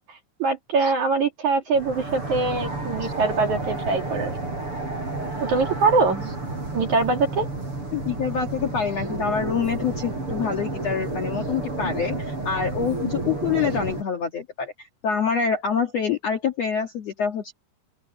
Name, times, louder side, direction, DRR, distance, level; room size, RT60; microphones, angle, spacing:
voice 1, 0.0-4.3 5.4-6.3 6.7-7.5, right 4 dB, 50° right, 2.9 m, -23 dB
sound 1, 1.7-14.0, right 2 dB, 25° right, 8.1 m, -31 dB
voice 2, 7.9-14.7 15.0-17.5, left 6 dB, 80° left, 1.4 m, -26 dB
open air
omnidirectional pair, 5.6 m